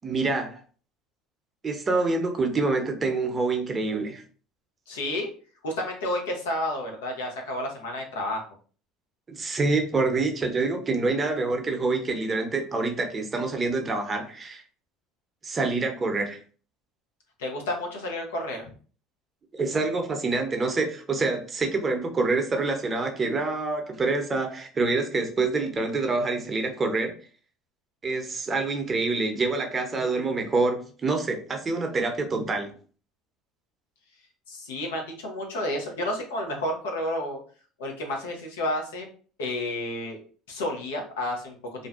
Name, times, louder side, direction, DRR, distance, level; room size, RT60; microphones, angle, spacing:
voice 1, 0.0-0.6 1.6-4.2 9.3-14.6 15.4-16.4 19.5-27.1 28.0-32.7, right 3 dB, 30° right, 4 dB, 0.6 m, -26 dB
voice 2, 4.9-5.3 5.6-8.4 17.4-18.7 34.5-37.4 37.8-39.1 39.4-40.2 40.5-41.6, left 1 dB, 85° left, 1 dB, 0.7 m, -30 dB
2.5 x 2.2 x 2.4 m, 0.41 s
hypercardioid pair, 80°, 0 cm